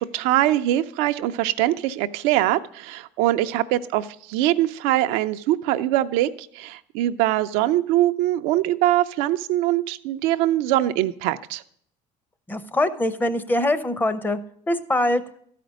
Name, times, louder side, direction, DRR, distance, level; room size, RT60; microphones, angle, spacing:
voice 1, 0.0-11.6, right 14 dB, 85° right, 9 dB, 0.4 m, -22 dB
voice 2, 12.5-14.4 14.7-15.2, left 1 dB, 15° left, 13 dB, 0.7 m, -23 dB
12.5 x 5.0 x 6.2 m, 0.64 s
supercardioid pair, 100°, 14 cm